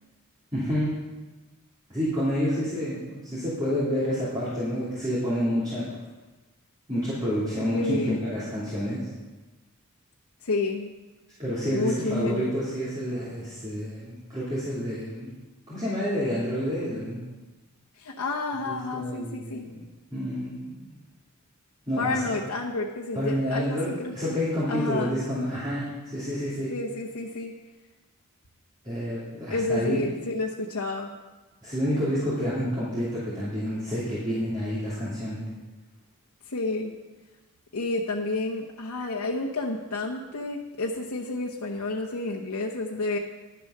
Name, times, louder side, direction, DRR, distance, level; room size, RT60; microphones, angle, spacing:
voice 1, 0.5-1.0 1.9-5.8 6.9-9.1 11.4-15.3 15.7-17.2 18.6-19.8 20.1-20.9 21.9-22.2 23.1-26.7 28.8-30.0 31.6-35.5, equal, 20° right, -10 dB, 2.9 m, -29 dB
voice 2, 7.7-8.2 10.4-10.9 11.7-12.5 18.0-19.7 22.0-24.4 24.7-25.2 26.7-27.5 29.5-31.1 36.5-36.9 37.7-43.2, left 2 dB, 75° left, -2 dB, 0.9 m, -30 dB
11.5 x 6.9 x 6.5 m, 1.2 s
head